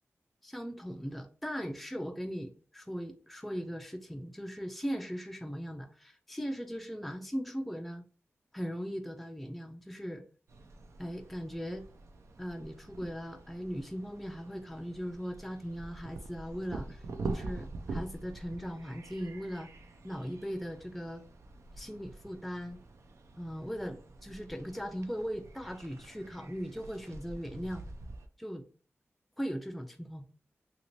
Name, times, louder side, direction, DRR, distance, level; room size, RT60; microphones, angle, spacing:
voice 1, 0.4-8.0 8.5-10.2 11.0-11.9 12.4-19.7 20.0-21.2 21.8-22.8 23.4-27.8 28.4-28.6 29.4-30.3, equal, ahead, 5 dB, 0.3 m, -39 dB
sound 1, 10.5-28.3, right 3 dB, 90° right, 0.4 m, -45 dB
2.9 x 2.7 x 2.9 m, 0.40 s
wide cardioid pair, 85°, 5 cm